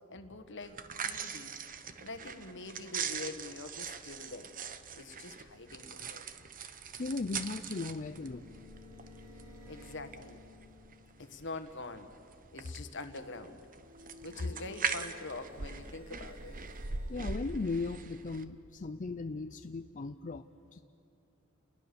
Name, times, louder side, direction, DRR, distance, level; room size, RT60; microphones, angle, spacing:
voice 1, 0.1-1.6 2.0-4.5 5.0-6.2 9.7-10.4 11.2-12.1 12.5-13.6 14.2-16.6, left 3 dB, 60° left, 8 dB, 1.6 m, -44 dB
sound 1, 0.6-18.4, right 6 dB, 40° right, 1.0 m, -42 dB
voice 2, 7.0-8.4 17.1-20.4 20.7-20.8, left 3 dB, 35° left, 8 dB, 0.5 m, -37 dB
sound 2, 7.9-11.4 13.7-18.1, left 2 dB, 75° right, 2.9 m, -54 dB
30.0 x 21.0 x 7.0 m, 2.6 s
head